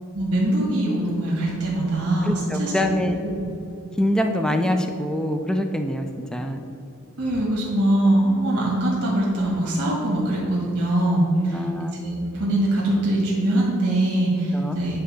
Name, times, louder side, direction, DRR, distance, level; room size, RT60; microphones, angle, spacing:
voice 1, 0.1-2.9 3.2-3.5 7.2-11.6 12.0-15.0, right 1 dB, 55° right, -5 dB, 1.6 m, -22 dB
voice 2, 2.2-3.2 3.9-6.6 11.5-12.0 14.5-14.8, left 1 dB, 5° left, 5 dB, 0.4 m, -24 dB
9.5 x 3.4 x 6.3 m, 2.7 s
head